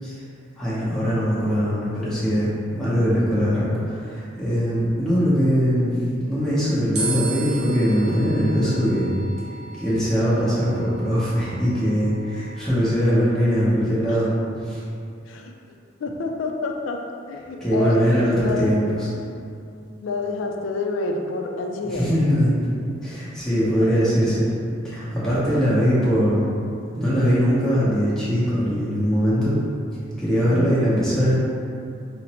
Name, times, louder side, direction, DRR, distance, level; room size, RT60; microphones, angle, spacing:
voice 1, 0.6-5.9 6.3-9.1 9.8-14.3 14.6-14.8 17.6-19.1 21.9-22.6 23.0-24.5 24.8-26.4 27.0-29.6 30.2-31.4, equal, 5° left, -11 dB, 0.8 m, -21 dB
sound 1, 6.9-13.4, right 3 dB, 60° right, 0.8 m, -36 dB
voice 2, 15.3-15.7 16.0-17.0 17.3-18.7 20.0-22.1 23.6-24.1 30.5-30.9, left 3 dB, 75° left, 2 dB, 0.4 m, -29 dB
4.9 x 2.0 x 2.9 m, 2.5 s
head